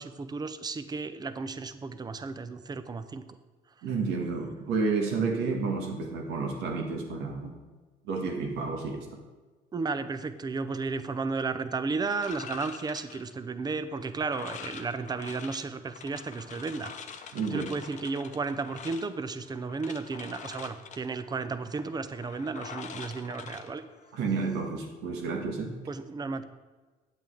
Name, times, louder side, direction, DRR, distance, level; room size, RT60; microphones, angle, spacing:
voice 1, 0.0-3.2 9.7-16.9 17.5-23.8 25.9-26.4, right 4 dB, 25° right, 12 dB, 0.6 m, -33 dB
voice 2, 3.8-7.6 8.0-9.2 17.3-17.7 24.1-25.8, right 4 dB, 90° right, 2 dB, 1.5 m, -31 dB
sound 1, 12.1-24.4, left 6 dB, 45° left, 0.8 m, -45 dB
8.9 x 8.0 x 3.8 m, 1.3 s
cardioid pair, 110°, 17 cm